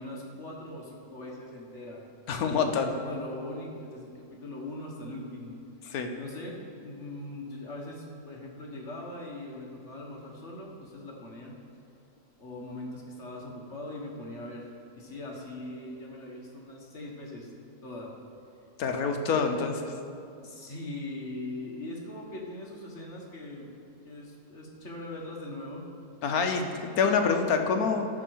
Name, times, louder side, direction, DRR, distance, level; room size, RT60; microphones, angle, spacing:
voice 1, 0.0-2.0 2.4-5.6 6.1-11.6 12.4-14.7 14.9-17.5 17.8-18.1 20.4-23.7 24.0-25.8, left 1 dB, 45° left, -2 dB, 1.6 m, -41 dB
voice 2, 2.3-2.9 5.9-6.1 18.8-19.8 26.2-28.1, left 5 dB, 60° left, 4 dB, 1.2 m, -26 dB
13.5 x 5.0 x 6.3 m, 2.5 s
omnidirectional pair, 1.8 m